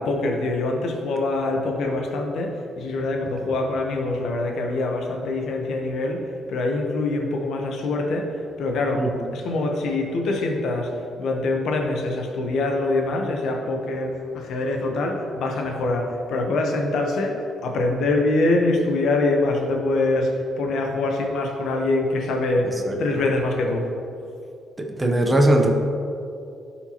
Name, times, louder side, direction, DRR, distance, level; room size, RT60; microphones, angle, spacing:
voice 1, 0.0-10.9 11.2-23.9, left 2 dB, 75° left, 2 dB, 1.0 m, -24 dB
voice 2, 24.8-25.7, right 1 dB, 20° right, 2 dB, 0.9 m, -19 dB
12.5 x 4.4 x 2.9 m, 2.6 s
cardioid pair, 90°, 0 cm